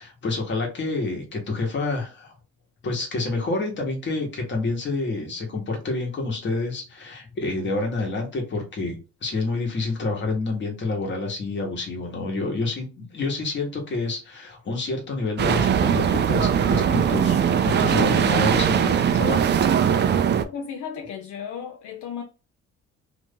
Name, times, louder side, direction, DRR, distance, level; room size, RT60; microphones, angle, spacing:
voice 1, 0.0-2.3 2.8-19.5, left 3 dB, 40° left, 1.4 m, -28 dB
sound 1, 15.4-20.4, right 8 dB, 40° right, 0.4 m, -20 dB
voice 2, 20.4-22.2, left 7 dB, 75° left, 0.7 m, -34 dB
2.9 x 2.7 x 3.6 m
cardioid pair, 130°, 29 cm